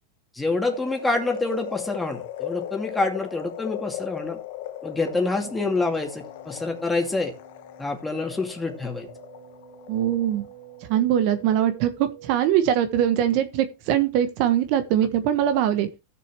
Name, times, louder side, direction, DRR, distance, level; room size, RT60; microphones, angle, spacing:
voice 1, 0.4-4.4 4.8-7.3 7.8-9.1, left 3 dB, 5° left, 2.4 m, -27 dB
sound 1, 0.6-10.9 11.3-11.4, left 13 dB, 65° left, 1.2 m, -38 dB
sound 2, 4.9-12.5, right 6 dB, 75° right, 3.2 m, -48 dB
voice 2, 9.9-10.5 10.9-15.9, right 10 dB, 50° right, 1.2 m, -22 dB
16.0 x 6.8 x 3.0 m
supercardioid pair, 145°, 0 cm